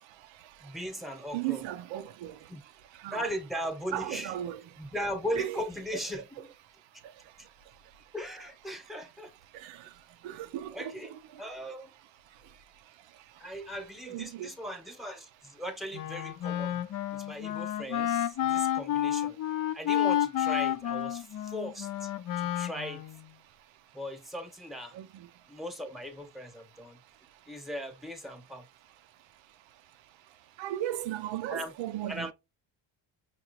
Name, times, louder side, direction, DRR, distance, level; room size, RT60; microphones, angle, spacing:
voice 1, 0.6-1.6 2.5-2.6 3.1-4.3 4.8-6.5 7.4-7.5 8.1-9.3 10.7-11.1 11.4-11.9 13.4-16.8 17.1-19.4 19.7-22.1 22.4-23.0 23.9-25.0 25.5-27.0 27.5-28.7 31.5-31.7 32.1-32.3, equal, ahead, 0.9 m, -38 dB
voice 2, 1.3-2.3 3.0-3.3 3.9-4.6 5.4-5.6 9.6-9.8 10.2-10.9 14.1-14.5 24.9-25.1 30.6-32.3, right 12 dB, 85° right, 0.6 m, -35 dB
Wind instrument woodwind instrument, 15.9-23.3, left 11 dB, 50° left, 0.4 m, -30 dB
5.9 x 2.3 x 3.0 m
cardioid pair, 140°, 44 cm